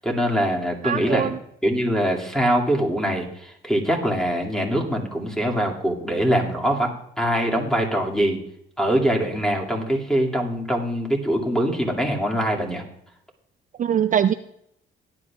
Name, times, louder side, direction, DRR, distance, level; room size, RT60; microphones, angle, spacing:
voice 1, 0.0-1.3 1.6-8.4 8.8-12.8, equal, 5° left, 0 dB, 2.3 m, -23 dB
voice 2, 0.8-1.4 13.8-14.3, right 9 dB, 40° right, 10 dB, 0.4 m, -22 dB
17.5 x 10.5 x 2.4 m, 0.76 s
cardioid pair, 90°, 20 cm